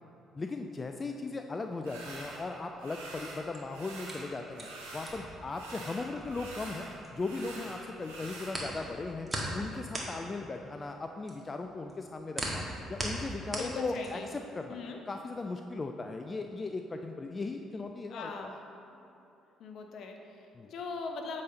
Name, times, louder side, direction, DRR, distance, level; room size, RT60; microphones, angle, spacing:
voice 1, 0.3-4.7 4.9-6.9 7.1-9.3 9.5-12.6 12.9-14.8 15.1-18.3 20.5-20.7, left 3 dB, 30° left, 5 dB, 0.4 m, -38 dB
sound 1, 1.8-2.4 2.8-3.4 3.7-5.2 5.5-8.5, right 2 dB, 90° right, 1.3 m, -45 dB
sound 2, 3.5-7.5 7.8-14.4, right 1 dB, 20° right, 1.7 m, -39 dB
voice 2, 13.6-14.3 14.7-15.0 18.1-18.6 19.6-21.4, left 4 dB, 65° left, 3 dB, 0.8 m, -40 dB
8.4 x 4.1 x 5.2 m, 2.9 s
hypercardioid pair, 55°, 0 cm